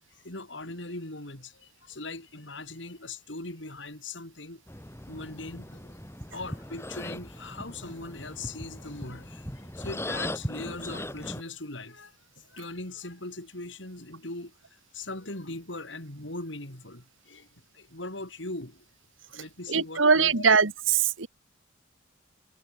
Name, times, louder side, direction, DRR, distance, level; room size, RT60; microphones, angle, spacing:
voice 1, 0.0-4.6 5.1-6.0 6.3-12.2 12.5-14.5 14.9-17.5 17.7-18.8 19.3-20.4, left 2 dB, 70° left, 5.3 m, -40 dB
sound 1, 4.7-11.4, left 1 dB, 15° left, 4.9 m, -39 dB
voice 2, 19.7-21.3, right 5 dB, 85° right, 1.6 m, -22 dB
head